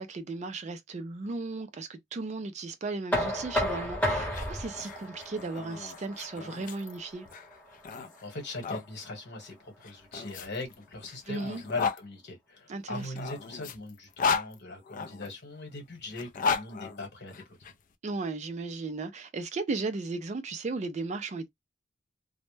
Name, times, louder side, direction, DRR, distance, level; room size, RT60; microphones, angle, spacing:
voice 1, 0.0-7.3 11.3-11.6 12.7-13.1 18.0-21.5, right 3 dB, 35° right, 0.4 m, -35 dB
Knock, 3.1-8.9, equal, 10° left, 0.9 m, -34 dB
sound 1, 4.2-8.9 9.8-12.0 12.9-15.3 16.1-17.7, left 5 dB, 45° left, 0.4 m, -34 dB
voice 2, 7.9-17.7, left 2 dB, 60° left, 1.1 m, -40 dB
2.1 x 2.0 x 3.0 m
head